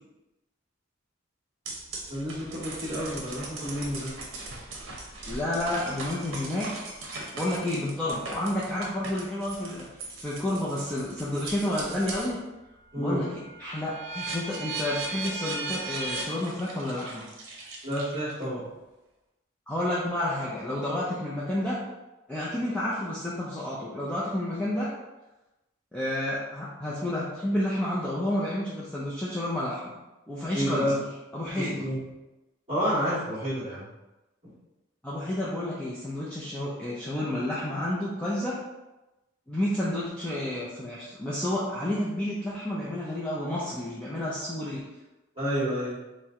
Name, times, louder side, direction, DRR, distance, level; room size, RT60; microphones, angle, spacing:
sound 1, 1.7-12.4 12.8-18.4, right 2 dB, 70° right, 0.7 m, -38 dB
voice 1, 2.1-4.1 12.9-13.2 17.8-18.7 30.5-31.0 31.5-32.0 32.7-33.9 34.4-34.5 45.4-46.0, equal, 25° right, -13 dB, 1.3 m, -29 dB
voice 2, 5.3-6.7 7.3-9.8 10.2-12.4 13.0-17.3 19.7-21.8 22.3-24.9 25.9-29.9 30.3-30.9 31.3-31.9 35.0-38.6 39.5-44.8, left 1 dB, 5° left, -8 dB, 0.4 m, -30 dB
4.3 x 2.1 x 3.6 m, 1.0 s
head